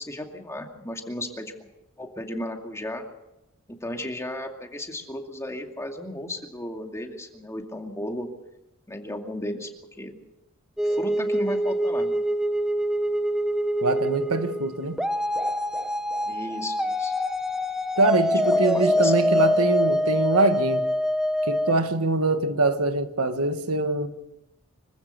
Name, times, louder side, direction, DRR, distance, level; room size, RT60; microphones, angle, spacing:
voice 1, 0.0-1.7 2.0-3.0 3.7-8.3 8.9-9.7 10.0-10.1 10.8-12.2 16.3-17.1 18.3-19.7, left 1 dB, 15° left, 2.4 m, -35 dB
sound 1, 10.8-21.7, equal, 5° right, 1.0 m, -25 dB
voice 2, 13.8-15.0 18.0-20.9 21.4-24.1, right 2 dB, 80° right, 1.5 m, -24 dB
25.5 x 15.0 x 6.8 m
head